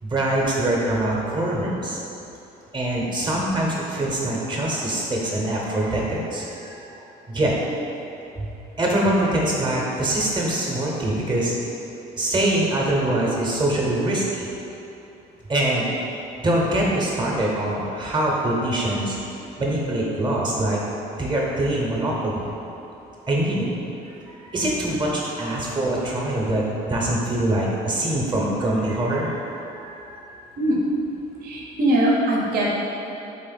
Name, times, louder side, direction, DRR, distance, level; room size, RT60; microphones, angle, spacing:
voice 1, 0.0-2.0 2.7-6.9 7.3-7.5 8.4-8.5 8.8-11.5 12.2-14.5 15.5-15.8 16.4-19.2 19.6-20.8 21.2-22.4 23.3-23.8 24.3-30.2, right 1 dB, 25° right, -3 dB, 0.9 m, -24 dB
voice 2, 31.4-32.8, right 1 dB, 65° right, -3 dB, 0.9 m, -21 dB
3.8 x 3.5 x 4.0 m, 2.9 s
cardioid pair, 110°, 17 cm